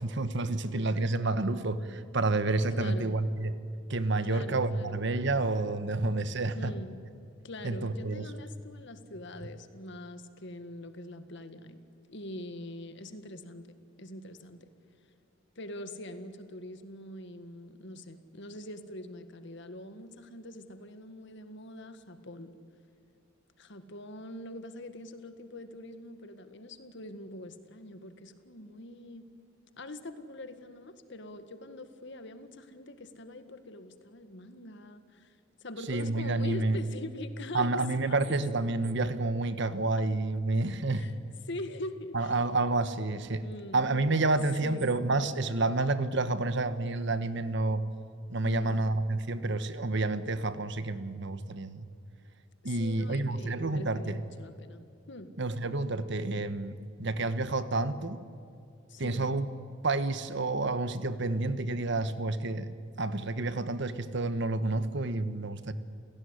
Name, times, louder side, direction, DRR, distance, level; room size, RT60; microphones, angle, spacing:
voice 1, 0.0-3.5 3.9-6.7 7.6-8.3 35.9-36.8 37.5-41.1 42.1-43.4 43.7-47.8 48.3-51.9 52.6-54.2 55.4-58.2 59.0-59.5 59.8-62.7 63.0-65.7, right 2 dB, 60° right, 12 dB, 1.3 m, -29 dB
voice 2, 2.7-3.2 4.1-5.0 6.6-7.0 7.4-11.8 12.1-14.7 15.6-22.5 23.6-29.3 29.8-37.7 38.0-38.4 40.9-41.2 41.5-42.4 43.4-43.8 44.6-45.0 48.4-48.8 52.6-55.3 58.9-59.2, left 1 dB, 60° left, 9 dB, 1.8 m, -43 dB
29.0 x 17.0 x 9.9 m, 2.5 s
head